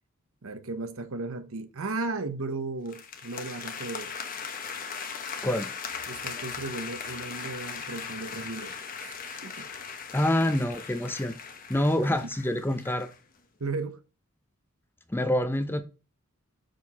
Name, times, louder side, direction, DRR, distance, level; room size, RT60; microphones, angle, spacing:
voice 1, 0.4-4.1 6.1-9.7 13.6-14.0, right 3 dB, 65° right, 0.9 m, -35 dB
sound 1, 2.9-13.2, left 6 dB, 40° left, 0.9 m, -39 dB
voice 2, 10.1-11.4 11.7-13.1 15.1-15.8, left 1 dB, 10° left, 0.6 m, -26 dB
6.4 x 4.5 x 4.1 m
head